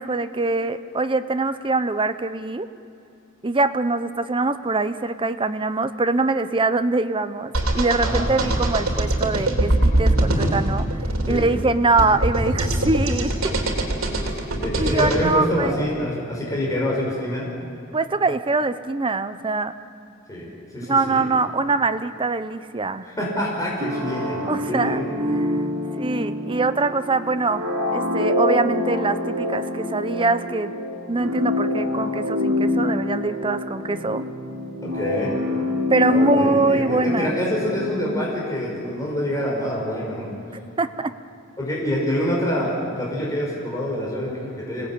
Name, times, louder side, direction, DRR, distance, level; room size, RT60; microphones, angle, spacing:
voice 1, 0.0-2.7 3.4-10.9 11.3-13.6 14.8-16.1 17.9-19.7 20.8-23.1 24.5-25.0 25.4-25.5 26.0-27.6 27.9-30.7 31.1-34.2 35.9-37.4 40.8-41.1, right 3 dB, 25° right, 11 dB, 0.8 m, -23 dB
sound 1, 7.5-15.2, right 1 dB, 80° right, 3.4 m, -22 dB
voice 2, 14.6-17.5 20.3-21.3 23.0-25.4 25.9-26.0 34.8-35.3 36.1-40.3 41.6-44.9, left 1 dB, 15° left, -4 dB, 5.4 m, -26 dB
sound 2, 23.8-38.4, left 2 dB, 60° right, 4.9 m, -26 dB
26.0 x 18.0 x 8.7 m, 2.6 s
head